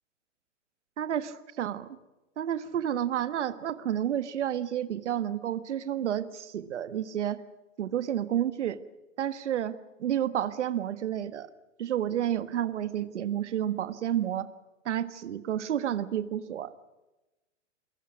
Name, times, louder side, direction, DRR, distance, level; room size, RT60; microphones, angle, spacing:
voice 1, 1.0-2.0 2.4-7.4 7.8-8.8 9.2-11.5 11.8-14.5 14.8-16.7, right 10 dB, 70° right, 13 dB, 1.5 m, -30 dB
28.5 x 22.0 x 6.3 m, 1.0 s
hypercardioid pair, 120°, 37 cm